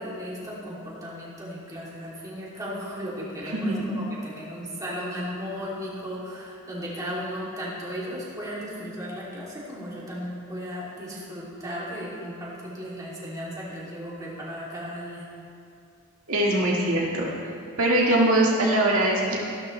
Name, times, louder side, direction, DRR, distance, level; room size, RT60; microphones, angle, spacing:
voice 1, 0.0-15.3, equal, 15° right, -7 dB, 2.8 m, -35 dB
voice 2, 3.4-3.8 16.3-17.3 17.8-19.4, right 1 dB, 75° right, -4 dB, 1.9 m, -22 dB
15.0 x 12.0 x 3.3 m, 2.4 s
head